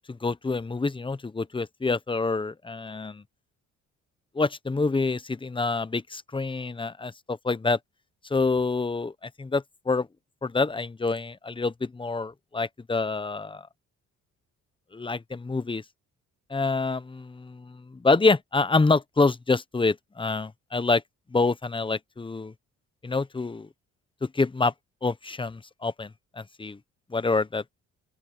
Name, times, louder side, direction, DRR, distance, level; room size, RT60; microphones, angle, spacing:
voice 1, 0.1-3.2 4.3-7.8 8.3-10.1 10.4-13.7 14.9-15.8 16.5-21.0 21.3-22.5 23.0-23.7 24.2-24.7 25.0-26.8 27.1-27.6, left 3 dB, 15° left, 0.9 m, -27 dB
open air
cardioid pair, 90°, 30 cm